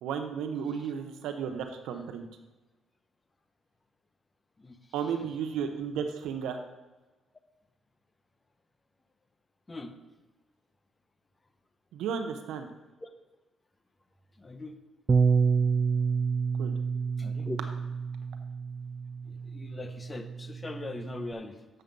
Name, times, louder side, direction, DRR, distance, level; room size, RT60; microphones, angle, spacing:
voice 1, 0.0-2.3 4.9-6.6 11.9-12.7 16.6-16.7, right 7 dB, 85° right, 6 dB, 0.8 m, -33 dB
voice 2, 4.6-4.9 9.7-10.0 13.0-13.1 14.3-14.8 17.2-17.6 19.2-21.7, left 2 dB, 25° left, 8 dB, 0.9 m, -41 dB
Bass guitar, 15.1-21.3, right 5 dB, 35° right, 0.3 m, -29 dB
7.9 x 6.8 x 5.3 m, 1.2 s
cardioid pair, 90°, 0 cm